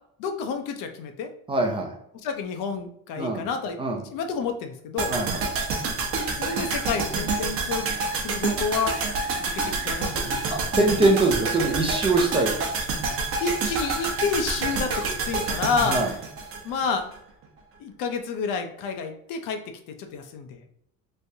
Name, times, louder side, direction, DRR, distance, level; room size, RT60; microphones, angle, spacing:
voice 1, 0.2-1.3 2.2-3.8 4.1-5.1 6.4-7.9 8.1-9.0 9.4-10.8 13.4-16.0 16.6-17.0 17.8-19.6 20.0-20.7, left 5 dB, 70° left, 6 dB, 0.7 m, -29 dB
voice 2, 1.5-1.9 3.2-3.4 3.8-4.0 5.1-5.4 10.5-12.6 15.9-16.1, right 2 dB, 15° right, 1 dB, 0.4 m, -23 dB
sound 1, 5.0-17.2 17.4-17.5, right 4 dB, 40° right, 0.8 m, -28 dB
3.4 x 3.3 x 2.7 m, 0.73 s
cardioid pair, 175°, 33 cm